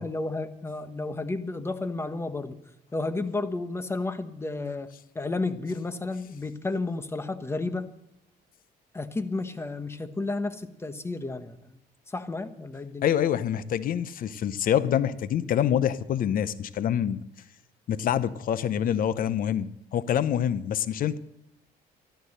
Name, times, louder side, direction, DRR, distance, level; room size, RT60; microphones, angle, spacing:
voice 1, 0.0-2.6 2.9-7.9 8.9-11.6 12.1-13.1, left 3 dB, 15° left, 10 dB, 1.2 m, -32 dB
voice 2, 13.0-17.2 17.9-21.2, left 9 dB, 55° left, 15 dB, 0.8 m, -26 dB
13.0 x 13.0 x 6.6 m, 0.82 s
cardioid pair, 110°, 17 cm